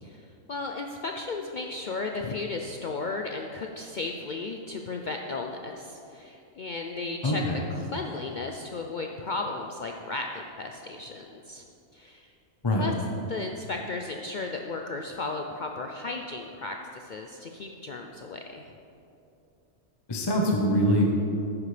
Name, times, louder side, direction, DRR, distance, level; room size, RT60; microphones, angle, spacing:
voice 1, 0.0-7.4 7.7-11.6 11.9-12.3 12.8-12.9 13.3-18.7, left 3 dB, 80° left, 2 dB, 0.4 m, -35 dB
voice 2, 7.2-7.6 12.6-12.8 20.1-21.1, equal, 20° left, 0 dB, 0.8 m, -23 dB
10.5 x 9.7 x 3.3 m, 2.7 s
omnidirectional pair, 1.4 m